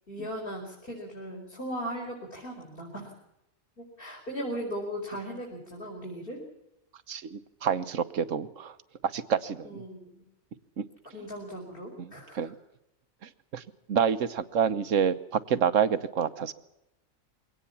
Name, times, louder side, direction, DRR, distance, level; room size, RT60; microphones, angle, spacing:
voice 1, 0.1-3.1 3.8-6.4 9.6-10.2 11.1-12.5, equal, 40° left, -1 dB, 5.1 m, -38 dB
voice 2, 7.1-8.7 9.1-9.8 10.8-10.9 12.0-12.5 13.2-13.6 13.9-16.5, right 7 dB, 70° right, 13 dB, 1.4 m, -28 dB
23.0 x 18.0 x 7.2 m, 0.86 s
omnidirectional pair, 1.4 m